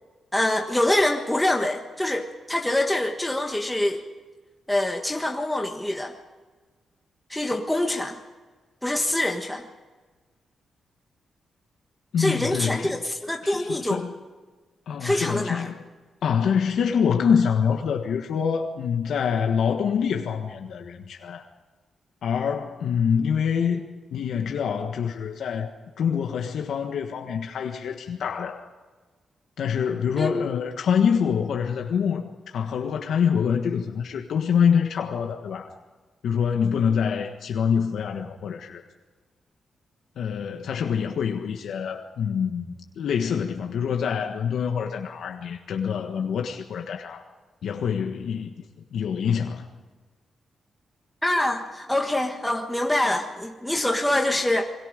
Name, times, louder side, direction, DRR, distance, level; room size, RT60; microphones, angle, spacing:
voice 1, 0.3-4.0 4.7-6.1 7.3-8.2 8.8-9.7 12.2-14.0 15.0-15.7 30.2-30.5 51.2-54.6, left 1 dB, 5° left, 1.4 m, -25 dB
voice 2, 12.1-13.0 13.4-14.1 14.9-15.8 16.2-21.5 22.2-23.8 24.1-28.7 29.6-35.7 36.2-38.8 40.2-47.2 47.6-48.6 48.9-49.7, left 7 dB, 75° left, 1.5 m, -25 dB
28.5 x 22.5 x 5.2 m
wide cardioid pair, 135°, 0 cm